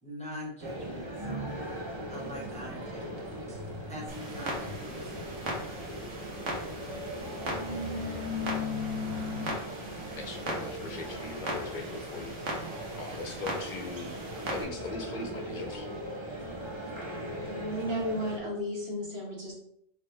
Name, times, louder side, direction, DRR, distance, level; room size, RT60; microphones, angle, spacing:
voice 1, 0.0-1.5 2.1-5.3, equal, 5° left, -3 dB, 0.7 m, -44 dB
sound 1, 0.6-18.4, right 1 dB, 30° right, 0.6 m, -40 dB
sound 2, 1.2-9.5, left 4 dB, 10° right, 1.1 m, -39 dB
Clock, 4.1-14.6, right 1 dB, 75° right, 1.3 m, -39 dB
voice 2, 10.2-12.4 13.0-14.2 14.5-15.9, left 3 dB, 50° left, 4 dB, 0.6 m, -40 dB
voice 3, 17.4-19.5, equal, 55° right, -3 dB, 1.5 m, -34 dB
4.7 x 2.9 x 3.2 m, 0.72 s
omnidirectional pair, 1.3 m